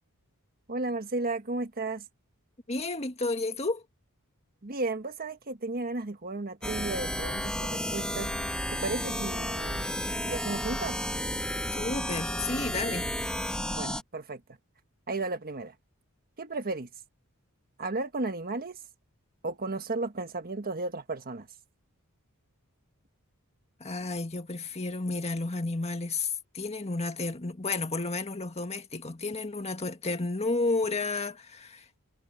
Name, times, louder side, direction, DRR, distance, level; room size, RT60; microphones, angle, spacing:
voice 1, 0.7-2.0 4.6-8.3 8.7-10.0 10.2-11.0 13.7-14.4 15.1-15.7 16.4-16.9 17.8-18.8 19.4-21.5, right 3 dB, 45° right, 1.5 m, -34 dB
voice 2, 2.7-3.8 11.7-13.1 23.8-32.0, left 3 dB, 30° left, 1.8 m, -32 dB
sound 1, 6.6-14.0, equal, 5° left, 2.0 m, -32 dB
head